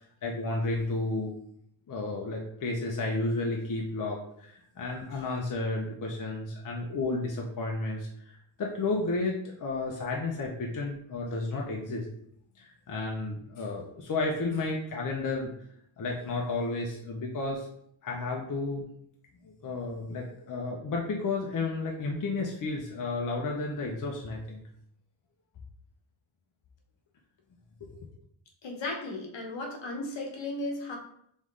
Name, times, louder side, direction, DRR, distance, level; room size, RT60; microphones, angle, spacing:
voice 1, 0.2-1.3 1.9-12.1 12.6-15.5 16.0-17.7 18.0-18.9 19.4-24.6 27.8-27.9, left 3 dB, 40° left, -1 dB, 0.6 m, -32 dB
voice 2, 28.6-31.0, left 2 dB, 60° left, 1 dB, 1.0 m, -35 dB
3.5 x 3.1 x 3.7 m, 0.69 s
wide cardioid pair, 145°, 49 cm